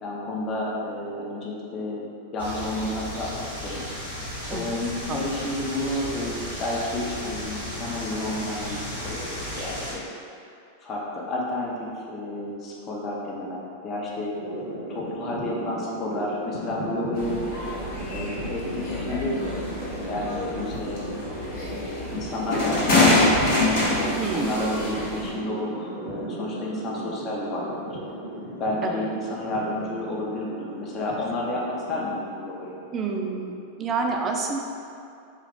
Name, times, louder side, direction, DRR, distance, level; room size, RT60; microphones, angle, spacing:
voice 1, 0.0-2.0 2.3-3.8 4.5-10.0 10.8-14.3 14.9-17.4 18.1-21.0 21.6-23.0 23.9-28.0 28.6-32.8, left 1 dB, 30° left, -4 dB, 0.6 m, -31 dB
sound 1, 2.4-9.9, left 1 dB, 85° left, 1.2 m, -35 dB
sound 2, 14.4-33.9, right 1 dB, 75° right, 0.6 m, -36 dB
sound 3, 17.2-25.3, left 2 dB, 50° left, 0.9 m, -26 dB
voice 2, 24.2-24.6 28.8-29.0 32.9-33.5 33.8-34.6, right 4 dB, 25° right, 1 dB, 0.3 m, -28 dB
3.0 x 2.4 x 3.4 m, 2.5 s
figure-of-eight pair, 90°, 0 cm